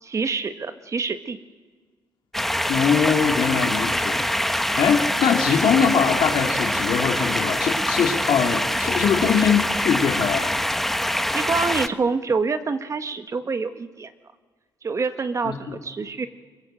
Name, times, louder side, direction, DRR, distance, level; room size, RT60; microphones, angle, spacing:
voice 1, 0.0-1.4 11.3-14.1 14.8-16.3, right 4 dB, 40° right, 9 dB, 1.4 m, -26 dB
sound 1, 2.3-11.9, left 1 dB, 5° left, 1.1 m, -24 dB
voice 2, 2.7-10.5 15.4-15.8, left 7 dB, 70° left, 2 dB, 2.5 m, -22 dB
24.0 x 22.0 x 7.7 m, 1.5 s
cardioid pair, 85°, 8 cm